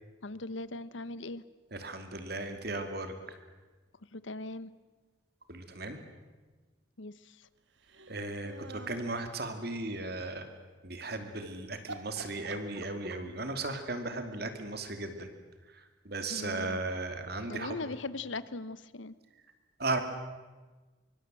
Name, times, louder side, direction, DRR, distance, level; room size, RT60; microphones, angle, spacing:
voice 1, 0.2-1.4 4.1-4.7 7.0-7.3 16.3-16.8 17.5-19.1, left 2 dB, 75° left, 16 dB, 1.0 m, -39 dB
voice 2, 1.7-3.4 5.5-6.0 8.1-10.5 10.8-15.3 15.7-17.9 19.8-20.0, right 2 dB, 55° right, 7 dB, 2.7 m, -36 dB
sound 1, 7.8-9.2 11.3-11.5 11.9-13.4, right 3 dB, 70° right, 1.8 m, -46 dB
24.5 x 24.0 x 7.7 m, 1.3 s
head